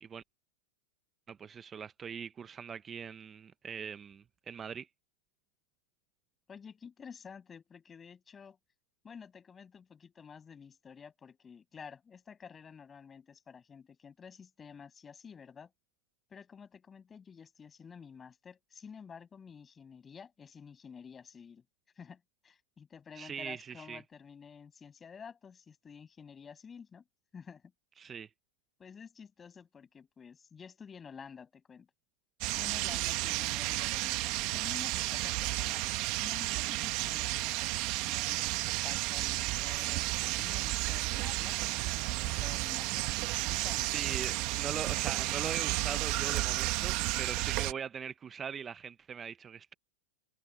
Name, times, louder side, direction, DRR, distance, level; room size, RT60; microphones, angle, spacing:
voice 1, 1.3-4.9 23.1-24.0 28.0-28.3 43.8-49.7, right 7 dB, 15° right, 0.4 m, -41 dB
voice 2, 6.5-8.6 9.0-15.7 16.3-21.6 22.0-27.0 27.3-27.6 28.8-31.9 32.6-35.8 36.2-43.1 43.5-43.9, left 6 dB, 15° left, 6.9 m, -51 dB
sound 1, 32.4-47.7, right 20 dB, 40° right, 1.0 m, -32 dB
supercardioid pair, 155°, 0 cm